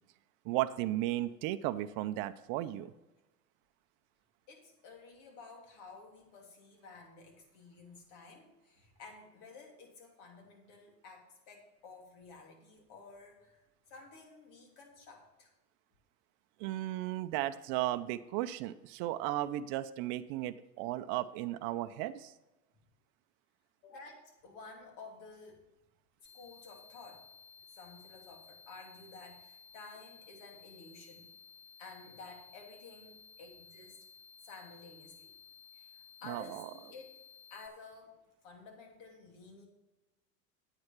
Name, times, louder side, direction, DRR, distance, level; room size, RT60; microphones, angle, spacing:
voice 1, 0.4-2.9 16.6-22.3 36.3-36.7, right 14 dB, 50° right, 10 dB, 0.7 m, -35 dB
voice 2, 4.5-13.6 13.9-15.5 23.8-25.6 26.3-27.3 27.7-31.3 31.8-34.1 34.4-35.3 35.7-35.9 36.2-37.1 37.5-38.2 38.4-39.7, left 4 dB, 60° left, 2 dB, 3.2 m, -53 dB
sound 1, 26.2-37.7, left 6 dB, 15° left, 1.0 m, -57 dB
9.5 x 8.5 x 4.5 m, 1.0 s
hypercardioid pair, 90°, 47 cm